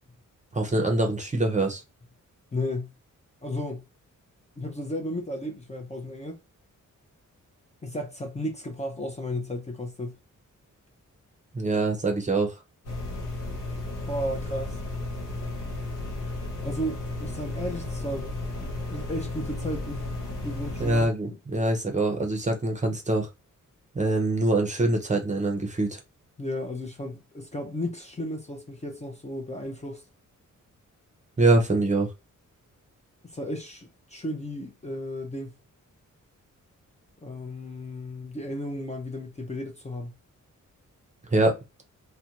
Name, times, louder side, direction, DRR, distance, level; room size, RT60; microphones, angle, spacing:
voice 1, 0.5-1.8 11.5-12.5 20.8-23.3 23.9-26.0 31.4-32.1 41.3-41.6, right 2 dB, 25° right, 0.6 m, -24 dB
voice 2, 2.5-2.9 3.4-3.8 4.6-6.4 7.8-10.2 14.1-14.8 16.6-20.1 20.4-21.4 26.4-30.0 33.2-35.6 37.2-40.1, left 1 dB, 20° left, 0.5 m, -34 dB
sound 1, 12.8-21.1, left 2 dB, 75° left, 0.9 m, -34 dB
2.5 x 2.2 x 2.8 m
wide cardioid pair, 115°, 32 cm